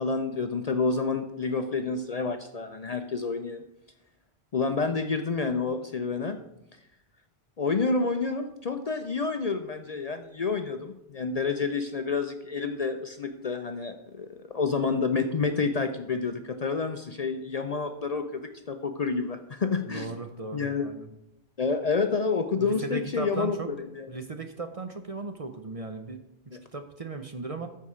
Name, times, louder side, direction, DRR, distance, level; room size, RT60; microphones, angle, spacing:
voice 1, 0.0-3.6 4.5-6.4 7.6-14.3 14.5-20.1 20.5-20.9 21.6-24.1 26.5-26.6, left 4 dB, 45° left, 6 dB, 0.6 m, -29 dB
voice 2, 19.9-21.1 22.6-23.7 24.1-26.2 26.5-27.7, right 3 dB, 40° right, 6 dB, 0.7 m, -37 dB
14.0 x 4.7 x 4.9 m, 0.88 s
omnidirectional pair, 1.1 m